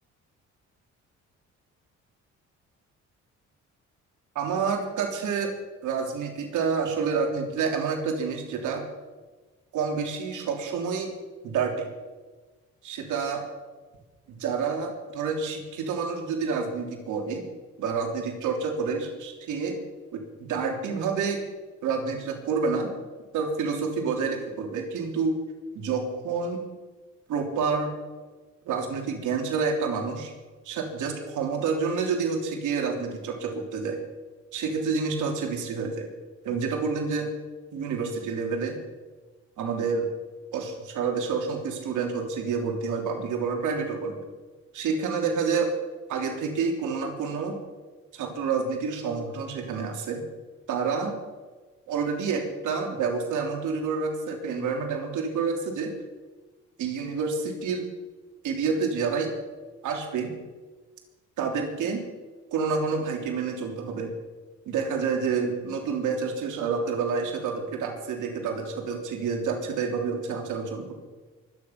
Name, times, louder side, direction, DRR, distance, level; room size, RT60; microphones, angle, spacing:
voice 1, 4.3-5.5 5.8-8.8 9.7-11.1 11.4-11.9 12.8-13.4 14.4-17.4 17.8-19.8 20.1-21.4 21.8-22.9 23.3-25.4 25.7-26.6 27.3-27.9 28.7-30.3 30.6-34.0 34.5-36.1 36.4-37.3 37.7-38.8 39.6-40.1 40.5-44.2 44.7-45.7 46.1-47.6 48.1-50.2 50.7-51.1 51.9-55.9 56.8-57.9 58.4-59.3 59.8-60.3 61.4-62.0 62.5-64.1 64.7-71.0, right 5 dB, 80° right, 2 dB, 3.3 m, -28 dB
23.5 x 9.8 x 5.9 m, 1.3 s
cardioid pair, 90°, 30 cm